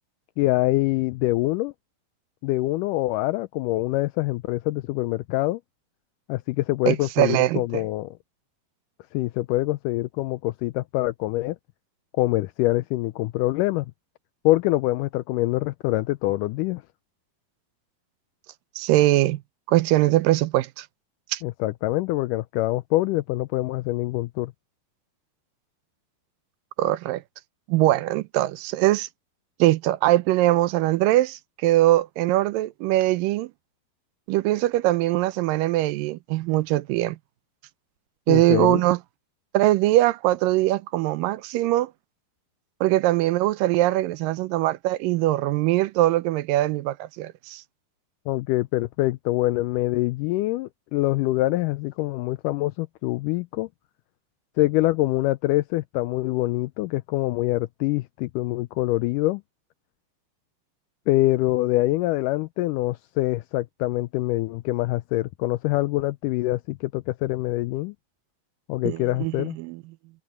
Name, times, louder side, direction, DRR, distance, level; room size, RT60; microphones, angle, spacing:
voice 1, 0.4-1.7 2.4-5.6 6.3-8.2 9.1-11.6 12.2-13.9 14.4-16.8 21.4-24.5 38.3-38.8 48.3-53.7 54.6-59.4 61.1-67.9 68.7-69.6, left 18 dB, 85° left, 1.8 m, -25 dB
voice 2, 6.9-7.8 18.8-19.4 19.7-20.9 21.3-21.4 26.8-27.2 27.7-29.1 29.6-33.5 34.3-37.2 38.3-39.0 39.5-41.9 42.8-47.6 68.9-69.8, right 16 dB, 80° right, 2.2 m, -22 dB
omnidirectional pair, 4.3 m